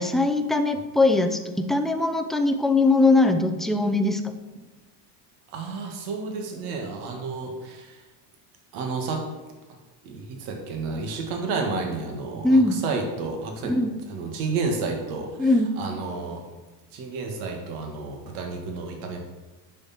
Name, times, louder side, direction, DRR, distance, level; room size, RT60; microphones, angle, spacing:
voice 1, 0.0-4.2 12.4-12.8 13.6-13.9 15.4-15.7, left 2 dB, ahead, 6 dB, 0.4 m, -21 dB
voice 2, 5.5-8.0 8.7-9.2 10.0-13.7 14.1-16.4 16.9-19.2, right 4 dB, 75° right, 2 dB, 2.0 m, -31 dB
9.7 x 6.5 x 4.4 m, 1.2 s
cardioid pair, 130°, 46 cm